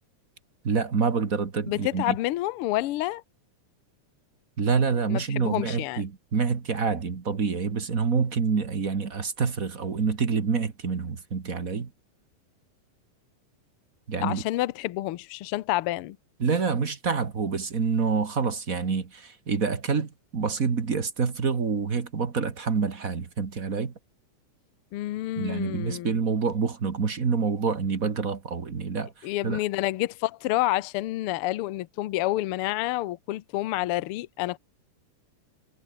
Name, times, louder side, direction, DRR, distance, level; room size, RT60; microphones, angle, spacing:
voice 1, 0.6-2.1 4.6-11.9 14.1-14.4 16.4-23.9 25.4-29.6, right 5 dB, 35° right, 1.7 m, -27 dB
voice 2, 1.7-3.2 5.1-6.0 14.2-16.2 24.9-26.2 29.2-34.6, left 16 dB, 90° left, 1.2 m, -28 dB
omnidirectional pair, 3.6 m